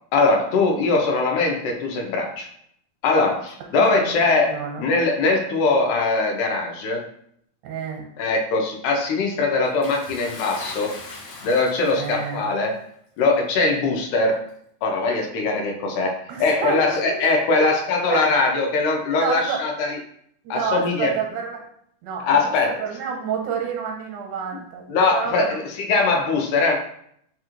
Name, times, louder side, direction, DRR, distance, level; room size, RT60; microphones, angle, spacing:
voice 1, 0.0-2.5 3.0-7.0 8.2-11.0 11.4-12.8 13.2-14.4 14.8-20.0 20.5-21.1 22.2-22.8 24.9-26.8, left 3 dB, 90° left, 2 dB, 2.1 m, -21 dB
voice 2, 3.8-4.1 4.5-4.8 7.6-8.1 11.9-12.5 16.3-17.2 17.5-17.7 18.1-18.3 19.2-19.6 20.4-21.6 22.0-24.8 25.1-25.7, right 6 dB, 85° right, 1 dB, 2.1 m, -29 dB
Bathtub (filling or washing) / Splash splatter, 9.8-12.4 13.3-13.4 14.4-14.5, left 3 dB, 70° left, 1.7 m, -39 dB
4.9 x 2.4 x 3.0 m, 0.68 s
omnidirectional pair, 3.5 m